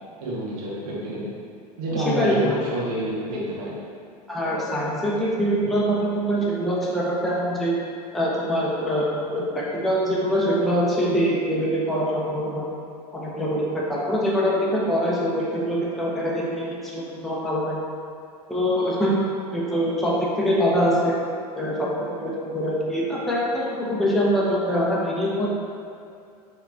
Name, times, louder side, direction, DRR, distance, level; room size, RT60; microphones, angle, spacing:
voice 1, 0.2-1.3 1.8-3.7 15.5-15.6, right 1 dB, 60° right, -6 dB, 1.4 m, -28 dB
voice 2, 1.9-2.7 4.3-7.7 8.1-12.7 13.1-17.8 18.5-19.2 19.5-21.1 21.6-25.6, equal, ahead, -6 dB, 0.8 m, -24 dB
4.7 x 3.2 x 3.5 m, 2.4 s
hypercardioid pair, 100°, 21 cm